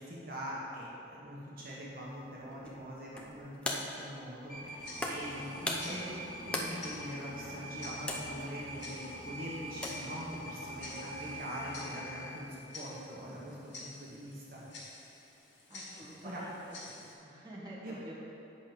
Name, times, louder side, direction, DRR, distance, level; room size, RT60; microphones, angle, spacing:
voice 1, 0.0-6.2 6.4-14.6 16.2-16.4 17.8-17.9, equal, 55° right, -6 dB, 1.3 m, -43 dB
sound 1, 1.9-11.7, left 1 dB, 5° left, 0.6 m, -42 dB
sound 2, 4.5-12.4, equal, 55° left, 1.4 m, -44 dB
Tick-tock, 4.8-17.1, left 2 dB, 80° left, 1.8 m, -51 dB
voice 2, 15.7-16.6 16.9-18.1, right 1 dB, 20° right, -7 dB, 1.6 m, -48 dB
8.5 x 6.0 x 5.1 m, 2.8 s
head